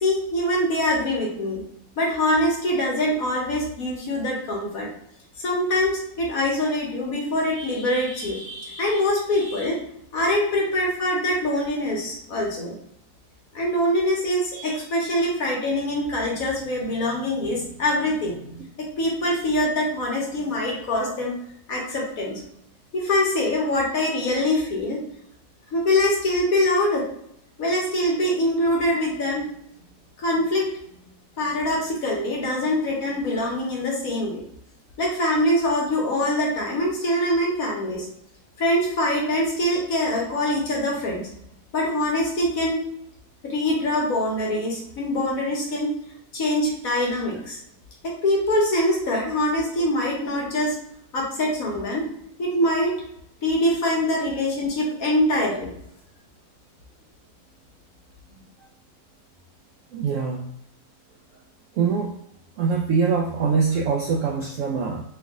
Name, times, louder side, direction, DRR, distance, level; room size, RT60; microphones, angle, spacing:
voice 1, 0.0-1.6 2.0-4.9 5.4-9.8 10.1-12.7 13.5-21.4 21.7-22.4 22.9-25.0 25.7-27.0 27.6-29.5 30.2-30.7 31.4-34.4 35.0-38.1 38.6-41.2 41.7-42.8 43.4-45.9 46.3-47.6 48.0-50.7 51.1-52.0 52.4-52.9 53.4-55.7 58.3-58.4, left 1 dB, 55° left, -2 dB, 1.4 m, -24 dB
voice 2, 59.9-60.5 61.7-62.1 62.6-65.0, right 5 dB, 90° right, 0 dB, 0.6 m, -23 dB
3.5 x 3.1 x 3.6 m, 0.72 s
omnidirectional pair, 2.0 m